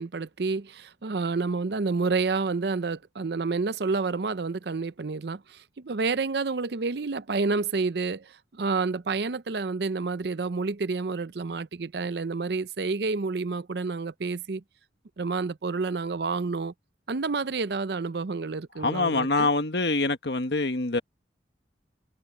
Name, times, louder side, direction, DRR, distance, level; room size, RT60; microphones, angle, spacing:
voice 1, 0.0-14.6 15.2-16.7 17.1-19.5, right 4 dB, 60° right, 0.6 m, -29 dB
voice 2, 18.8-21.0, left 3 dB, 65° left, 1.4 m, -25 dB
head